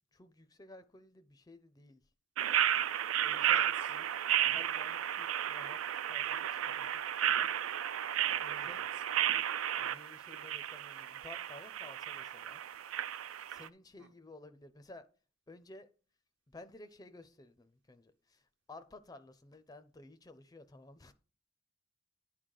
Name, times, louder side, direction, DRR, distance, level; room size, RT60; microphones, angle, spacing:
voice 1, 0.1-2.0 3.2-3.6 3.9-4.1 4.4-5.8 6.1-7.5 8.4-8.8 9.8-12.6 13.5-15.0 15.5-15.9 16.5-21.1, left 2 dB, 20° left, 0.4 m, -54 dB
sound 1, 2.4-13.7, right 10 dB, 90° right, 0.4 m, -33 dB
voice 2, 3.4-3.9 8.6-9.0 14.0-14.1, equal, 60° right, 0.8 m, -53 dB
10.0 x 3.8 x 6.4 m
head